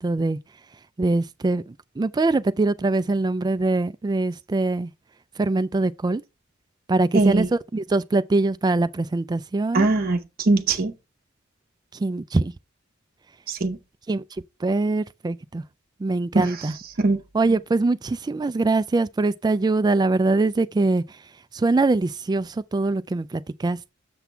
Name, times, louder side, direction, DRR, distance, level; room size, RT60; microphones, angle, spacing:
voice 1, 0.0-0.4 1.0-4.9 5.4-6.2 6.9-7.5 7.7-9.9 12.0-12.5 14.1-14.2 14.6-15.6 16.0-16.7 17.3-21.0 21.5-23.9, right 2 dB, 20° right, 0.3 m, -23 dB
voice 2, 7.1-7.5 9.7-10.9 13.5-13.8 16.3-16.7 17.0-17.2, right 2 dB, 45° right, 0.8 m, -21 dB
7.0 x 5.9 x 3.4 m
head